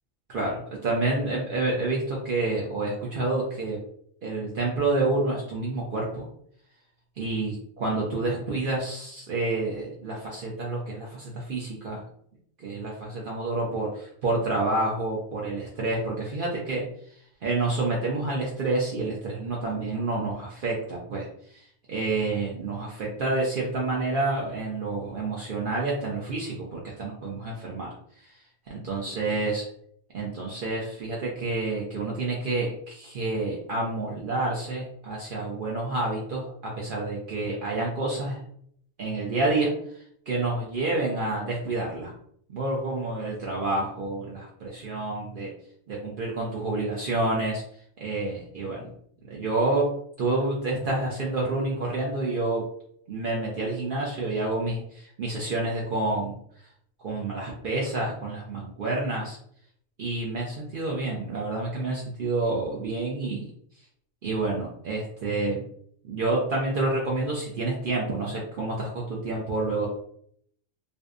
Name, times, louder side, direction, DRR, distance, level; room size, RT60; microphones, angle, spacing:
voice 1, 0.3-3.8 4.2-6.2 7.2-12.0 12.6-16.8 17.4-21.3 21.5-27.9 28.2-28.3 28.7-29.7 30.1-38.4 39.0-39.7 40.3-42.1 42.5-45.5 45.9-47.6 48.0-48.9 49.3-49.9 50.2-52.6 53.1-56.4 57.0-59.4 60.0-63.4 64.2-65.6 66.0-69.9, right 2 dB, 60° right, -3 dB, 0.5 m, -28 dB
2.6 x 2.1 x 2.4 m, 0.65 s
omnidirectional pair, 1.3 m